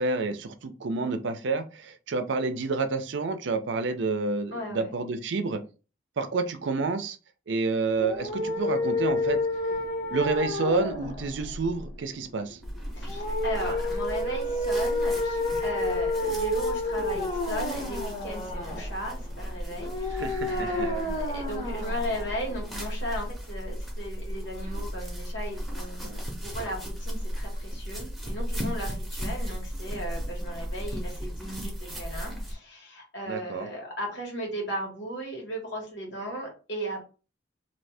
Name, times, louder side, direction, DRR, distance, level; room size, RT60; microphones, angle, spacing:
voice 1, 0.0-5.6 6.2-7.2 7.5-9.4 10.1-12.6 20.1-20.9 33.3-33.7, right 3 dB, 70° right, 9 dB, 0.5 m, -29 dB
voice 2, 4.5-4.9 12.9-37.0, equal, 70° left, -1 dB, 1.4 m, -36 dB
sound 1, 7.9-22.9, left 2 dB, 30° left, 0.8 m, -30 dB
sound 2, 12.6-32.5, equal, ahead, 0.7 m, -35 dB
2.7 x 2.7 x 3.3 m, 0.33 s
head